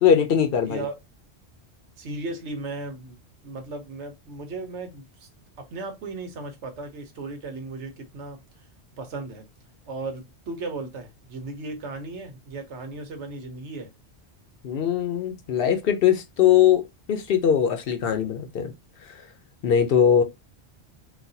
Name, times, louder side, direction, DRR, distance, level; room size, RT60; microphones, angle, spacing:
voice 1, 0.0-0.8 14.6-16.8 17.1-18.7 19.0-19.2 19.6-20.2, left 8 dB, 65° left, 0.7 m, -21 dB
voice 2, 0.6-0.9 2.0-3.2 3.4-5.3 5.6-8.4 9.0-9.4 9.9-13.9, right 3 dB, 85° right, 1.2 m, -36 dB
4.0 x 2.3 x 2.7 m
omnidirectional pair, 1.1 m